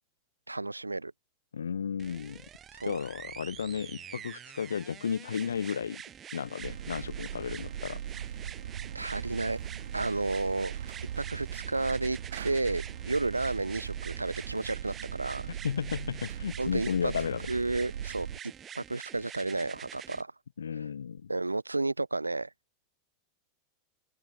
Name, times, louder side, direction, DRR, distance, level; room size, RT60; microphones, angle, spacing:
voice 1, 0.5-1.1 2.7-3.0 8.9-9.6 9.9-10.7 11.2-15.5 16.6-17.1 17.5-18.3 18.7-20.3 20.8-20.9 21.3-22.5, right 2 dB, 90° right, 1.7 m, -32 dB
voice 2, 1.5-2.4 2.8-6.0 6.3-8.0 15.6-17.5 20.6-21.3, left 7 dB, 75° left, 2.7 m, -33 dB
sound 1, 2.0-20.2 21.2-21.3, right 9 dB, 30° right, 7.5 m, -46 dB
sound 2, 6.6-18.4, right 9 dB, 70° right, 2.9 m, -40 dB
open air
figure-of-eight pair, 85°, 0 cm